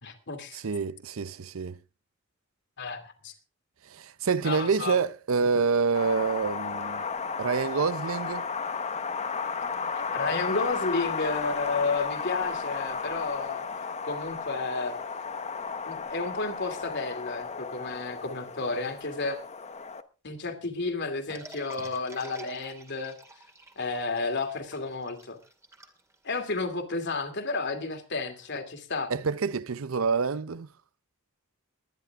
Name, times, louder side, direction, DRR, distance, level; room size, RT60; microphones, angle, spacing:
voice 1, 0.0-0.6 2.8-3.3 4.4-5.0 10.1-15.0 15.9-19.4 20.2-23.1 23.8-25.4 26.2-29.1, left 3 dB, 55° left, 2.7 m, -32 dB
voice 2, 0.5-1.8 3.9-7.0 7.4-8.5 29.1-30.7, right 5 dB, 65° right, 0.6 m, -27 dB
Wind, 5.9-20.0, left 5 dB, 30° left, 1.0 m, -34 dB
sound 1, 21.3-26.6, right 1 dB, 15° right, 2.2 m, -49 dB
21.5 x 10.5 x 3.6 m
head